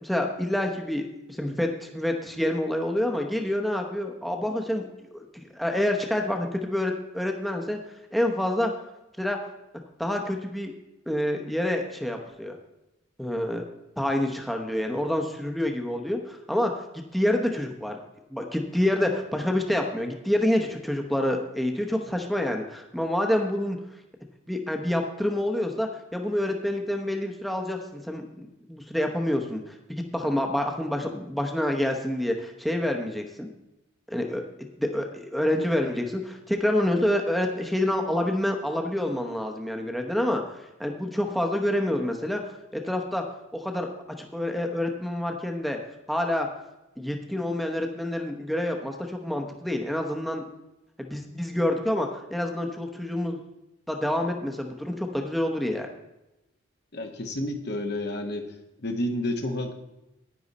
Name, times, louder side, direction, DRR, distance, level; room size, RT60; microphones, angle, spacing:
voice 1, 0.0-4.9 5.1-7.8 8.1-8.7 9.2-9.4 10.0-10.7 11.1-12.6 13.2-13.6 14.0-18.0 18.3-23.8 24.5-33.5 34.1-34.4 34.8-43.2 43.5-43.9 44.2-45.8 46.1-46.5 47.0-50.5 51.0-53.4 53.9-55.9, left 1 dB, ahead, 2 dB, 0.9 m, -27 dB
voice 2, 56.9-58.5 58.8-59.7, left 1 dB, 55° left, 5 dB, 1.1 m, -30 dB
10.5 x 9.6 x 4.1 m, 0.93 s
head